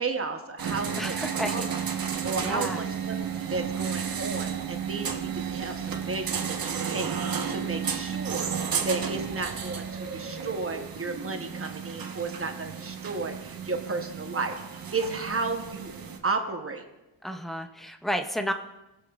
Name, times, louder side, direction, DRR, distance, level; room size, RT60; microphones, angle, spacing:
voice 1, 0.0-1.8 2.2-3.2 3.5-14.6 14.9-15.9 16.2-16.8, right 3 dB, 30° right, 4 dB, 0.8 m, -33 dB
sound 1, 0.6-16.2, right 7 dB, 45° right, 1.0 m, -33 dB
voice 2, 1.0-1.7 2.4-2.8 17.2-18.5, equal, ahead, 6 dB, 0.4 m, -31 dB
20.5 x 7.1 x 2.3 m, 1.0 s
wide cardioid pair, 150°, 49 cm